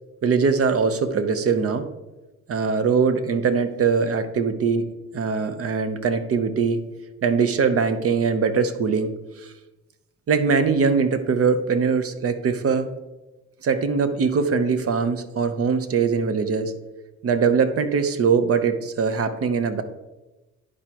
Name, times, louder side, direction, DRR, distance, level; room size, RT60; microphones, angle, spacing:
voice 1, 0.2-1.9 2.5-4.9 5.1-6.8 7.2-9.1 9.4-9.5 10.3-12.9 13.6-16.7 17.2-19.8, right 5 dB, 50° right, 9 dB, 0.8 m, -22 dB
11.0 x 4.9 x 2.9 m, 1.1 s
cardioid pair, 90°, 30 cm